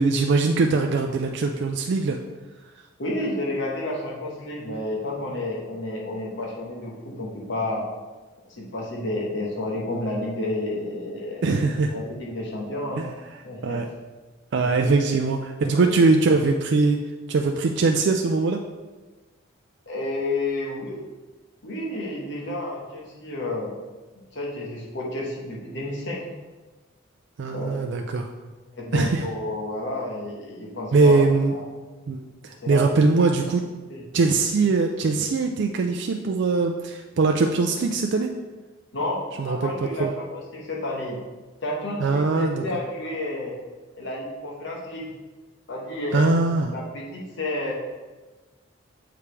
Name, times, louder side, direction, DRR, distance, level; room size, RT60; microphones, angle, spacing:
voice 1, 0.0-2.2 11.4-11.9 13.0-13.1 13.6-13.9 14.5-17.0 17.3-18.6 27.4-28.3 28.9-29.3 30.9-31.5 32.1-33.6 34.1-38.3 39.4-39.7 40.0-40.1 42.0-42.6 46.1-46.7, right 3 dB, 60° right, 3 dB, 0.4 m, -21 dB
voice 2, 3.0-7.9 8.5-11.6 11.9-13.1 13.4-13.8 14.6-15.0 15.6-15.9 19.9-21.1 21.6-23.8 24.3-26.3 27.4-27.7 28.7-31.6 32.6-32.8 33.9-34.0 38.9-41.2 41.6-43.6 43.9-45.1 45.7-46.3 46.7-47.7, left 1 dB, 65° left, -3 dB, 1.3 m, -31 dB
6.9 x 5.0 x 3.3 m, 1.2 s
head